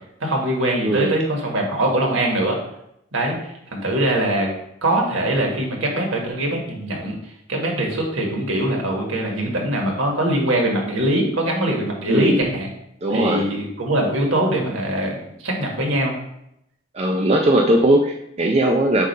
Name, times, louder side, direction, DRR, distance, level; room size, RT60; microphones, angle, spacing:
voice 1, 0.2-2.6 3.1-4.5 4.8-12.7 13.1-16.1, right 1 dB, 70° right, 0 dB, 1.4 m, -22 dB
voice 2, 0.8-1.2 12.1-12.4 13.0-13.5 16.9-19.1, right 1 dB, 30° right, 1 dB, 0.4 m, -19 dB
7.4 x 2.5 x 5.4 m, 0.80 s
head